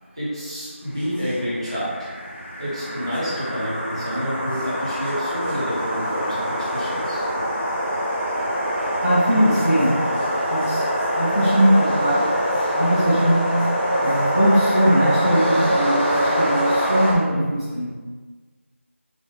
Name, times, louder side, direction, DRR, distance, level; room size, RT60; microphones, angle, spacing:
voice 1, 0.2-2.1 2.6-7.2, equal, 25° right, -10 dB, 1.0 m, -28 dB
sound 1, 1.0-17.1, equal, 40° left, 1.2 m, -24 dB
voice 2, 9.0-10.0 10.5-10.8 11.1-12.3 12.7-13.4 14.0-17.9, equal, 20° left, -10 dB, 0.4 m, -20 dB
3.9 x 2.8 x 3.2 m, 1.4 s
figure-of-eight pair, 175°, 7 cm